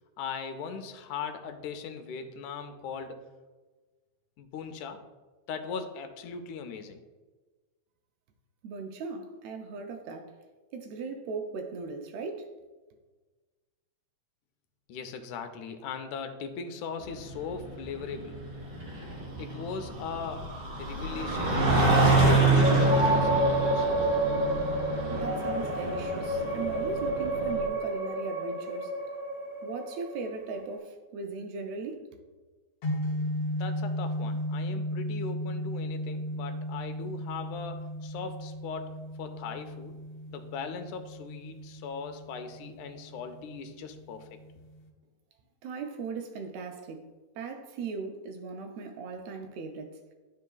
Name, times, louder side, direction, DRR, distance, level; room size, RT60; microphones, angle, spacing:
voice 1, 0.2-3.3 4.4-5.0 5.5-7.0 14.9-18.4 19.4-20.5 20.8-23.9 33.6-38.9 39.2-40.0 40.3-44.3, left 6 dB, 85° left, 2.1 m, -39 dB
voice 2, 8.6-10.3 10.7-12.5 25.1-28.9 29.6-32.2 45.6-47.0 47.4-50.0, right 4 dB, 75° right, 1.6 m, -38 dB
sound 1, 17.0-27.6, right 2 dB, 55° right, 1.3 m, -27 dB
sound 2, 22.6-30.7, right 1 dB, 10° left, 1.1 m, -30 dB
sound 3, 32.8-44.9, equal, 65° left, 2.0 m, -36 dB
11.5 x 4.6 x 2.3 m
omnidirectional pair, 3.4 m